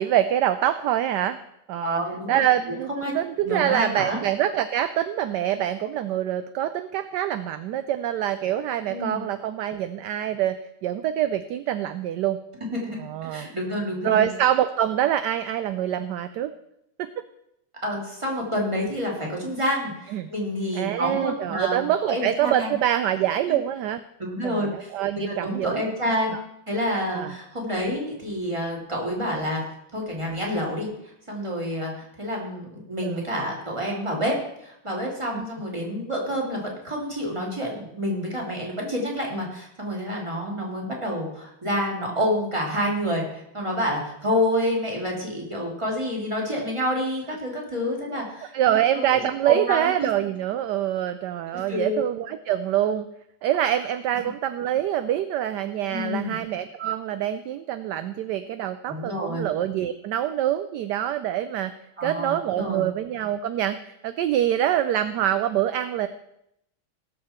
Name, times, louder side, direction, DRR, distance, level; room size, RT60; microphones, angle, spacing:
voice 1, 0.0-1.4 1.7-2.0 2.3-10.6 10.8-12.4 13.0-13.5 14.0-16.5 20.1-20.3 20.7-24.0 24.4-25.8 26.3-26.4 27.1-27.3 33.0-33.2 35.3-35.5 48.1-48.2 48.5-53.1 53.4-61.7 62.0-66.1, right 11 dB, 75° right, 11 dB, 1.1 m, -25 dB
voice 2, 1.8-2.4 2.9-3.1 3.4-4.2 8.9-9.2 12.7-13.0 13.2-14.3 17.8-22.8 23.5-23.6 24.2-26.3 26.7-29.6 29.9-48.8 49.1-49.8 51.5-52.0 55.9-56.4 58.9-59.5 62.0-62.9, equal, 15° right, -1 dB, 2.7 m, -28 dB
19.0 x 6.6 x 4.4 m, 0.78 s
omnidirectional pair, 2.1 m